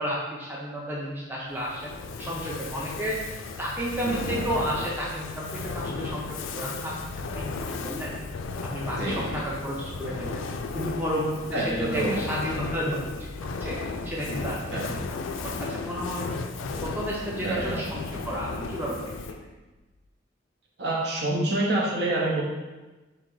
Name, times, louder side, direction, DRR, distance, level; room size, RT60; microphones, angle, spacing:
voice 1, 0.0-1.9 2.2-3.2 3.6-8.1 8.6-10.4 10.7-13.0 13.4-13.8 14.0-15.1 15.3-16.3 16.8-19.3, equal, 10° right, -6 dB, 0.5 m, -32 dB
Fire, 1.6-19.5, left 4 dB, 85° left, 0.3 m, -35 dB
voice 2, 9.0-9.4 11.5-12.2 14.7-14.9 17.4-17.8 20.8-22.4, right 1 dB, 55° right, -3 dB, 0.8 m, -27 dB
3.7 x 2.8 x 3.7 m, 1.2 s
head